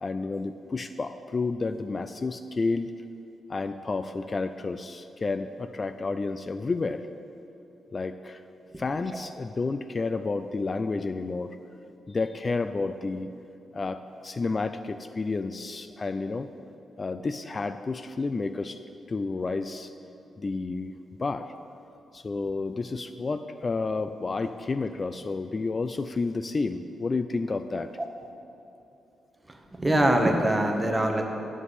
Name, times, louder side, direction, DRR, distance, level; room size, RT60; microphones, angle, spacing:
voice 1, 0.0-2.9 3.5-7.1 7.9-8.4 8.8-11.6 11.8-13.3 13.7-16.5 17.0-18.8 19.1-19.9 20.4-20.9 21.2-21.5 22.1-27.9, left 3 dB, 40° left, 10 dB, 0.4 m, -30 dB
voice 2, 29.5-31.2, right 1 dB, 20° right, 3 dB, 1.5 m, -24 dB
8.2 x 7.4 x 8.2 m, 2.7 s
supercardioid pair, 50°, 0 cm